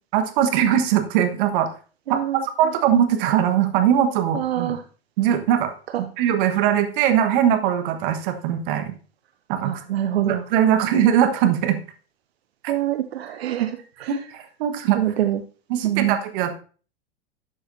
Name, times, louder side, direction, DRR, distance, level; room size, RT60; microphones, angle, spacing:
voice 1, 0.1-1.7 2.1-2.2 2.6-4.8 5.2-5.7 6.2-8.9 9.5-9.8 10.3-11.8 12.6-12.7 14.1-15.0 15.7-16.5, right 10 dB, 55° right, 7 dB, 1.3 m, -21 dB
voice 2, 2.1-2.4 4.3-4.8 9.6-10.4 12.7-14.2 14.9-15.4 15.8-16.2, right 12 dB, 70° right, 9 dB, 0.7 m, -25 dB
11.5 x 6.3 x 2.6 m, 0.39 s
hypercardioid pair, 95°, 32 cm